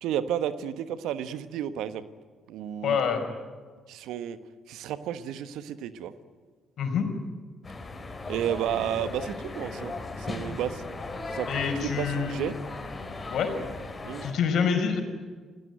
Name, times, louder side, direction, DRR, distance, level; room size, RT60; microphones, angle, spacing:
voice 1, 0.0-2.0 2.5-3.0 3.9-4.4 4.7-6.1 8.3-10.8 11.3-12.5 14.0-14.3, right 10 dB, 70° right, 12 dB, 1.3 m, -32 dB
voice 2, 2.8-3.2 6.8-7.1 11.5-12.4 13.3-13.5 14.2-15.0, left 6 dB, 60° left, 5 dB, 5.2 m, -26 dB
sound 1, 7.6-14.3, left 3 dB, 30° left, 5.5 m, -37 dB
29.0 x 18.0 x 9.3 m, 1.5 s
hypercardioid pair, 45°, 0 cm